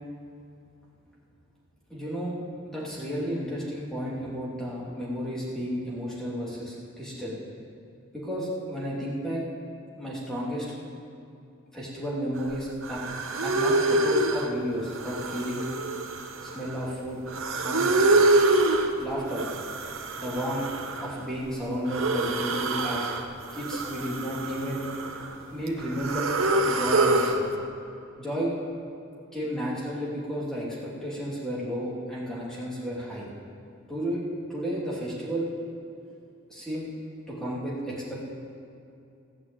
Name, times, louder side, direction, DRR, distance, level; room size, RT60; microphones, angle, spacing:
voice 1, 1.9-2.3 2.7-7.4 8.1-9.4 10.0-10.7 11.7-13.0 13.4-15.7 16.4-17.2 17.5-18.2 19.0-19.4 20.2-20.7 21.0-23.2 23.5-24.8 25.5-26.3 26.6-27.5 28.2-28.5 29.3-33.3 33.9-34.2 34.5-35.5 36.5-36.9 37.3-38.3, equal, 5° left, -7 dB, 3.0 m, -32 dB
sound 1, 12.5-12.6 12.8-14.5 14.9-16.9 17.3-18.9 19.3-21.2 21.9-23.3 23.5-25.3 25.7-27.4, right 2 dB, 70° right, 1.0 m, -26 dB
16.0 x 6.2 x 8.7 m, 2.6 s
head